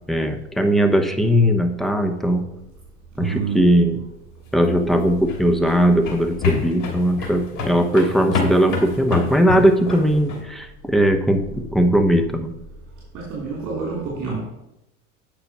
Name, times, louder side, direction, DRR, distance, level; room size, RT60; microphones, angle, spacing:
voice 1, 0.1-2.4 3.2-4.0 4.5-11.4 11.7-12.5, equal, ahead, 6 dB, 0.9 m, -19 dB
voice 2, 3.2-3.6 13.1-14.4, right 5 dB, 40° right, -4 dB, 3.1 m, -27 dB
sound 1, 4.7-10.4, left 5 dB, 45° left, 3.0 m, -27 dB
8.6 x 5.8 x 4.7 m, 0.91 s
hypercardioid pair, 95°, 42 cm